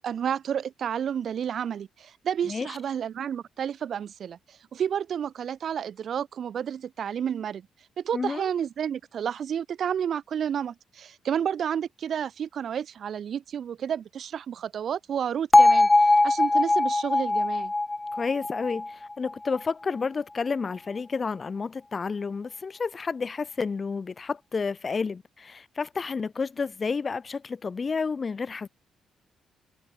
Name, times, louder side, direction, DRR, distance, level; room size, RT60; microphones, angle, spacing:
voice 1, 0.0-7.7 8.0-17.7, right 8 dB, 60° right, 6.8 m, -31 dB
voice 2, 2.5-2.8 8.1-8.5 18.1-28.7, left 5 dB, 35° left, 3.6 m, -30 dB
Bell, 15.5-19.6, left 2 dB, 15° left, 1.6 m, -21 dB
cardioid pair, 90°, 0 cm